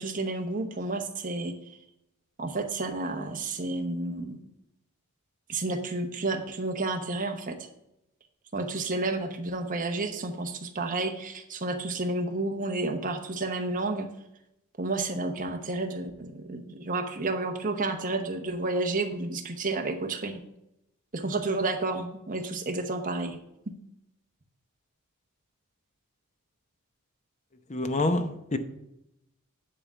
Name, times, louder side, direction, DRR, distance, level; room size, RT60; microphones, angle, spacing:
voice 1, 0.0-1.5 2.4-4.4 5.5-7.6 8.5-14.1 14.8-20.4 21.1-23.4, right 2 dB, 40° right, 4 dB, 1.0 m, -31 dB
voice 2, 27.7-28.6, left 2 dB, 30° left, 8 dB, 0.7 m, -27 dB
9.9 x 3.7 x 6.8 m, 0.83 s
head